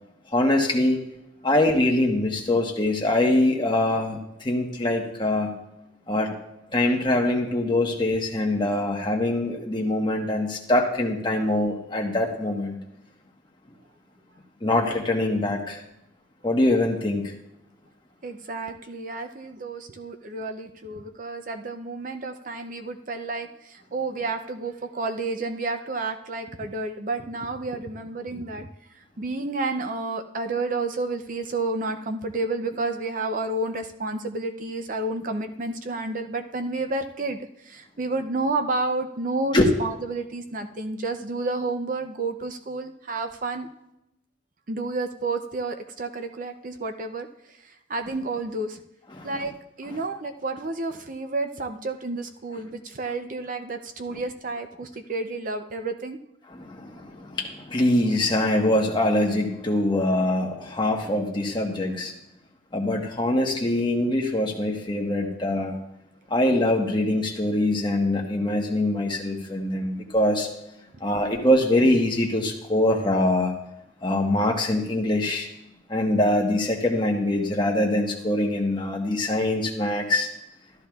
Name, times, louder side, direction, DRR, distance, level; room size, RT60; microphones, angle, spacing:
voice 1, 0.3-1.0 1.4-5.6 6.1-6.4 6.7-12.8 14.6-15.8 16.4-17.3 39.5-39.7 49.1-49.3 54.1-54.2 56.5-62.1 62.7-65.8 66.3-70.5 71.0-73.5 74.0-75.5 75.9-80.3, left 1 dB, 25° left, 1 dB, 1.2 m, -23 dB
voice 2, 18.2-43.7 44.7-48.8 49.2-56.2, right 3 dB, 40° right, 6 dB, 0.6 m, -30 dB
14.0 x 12.0 x 2.4 m, 0.85 s
head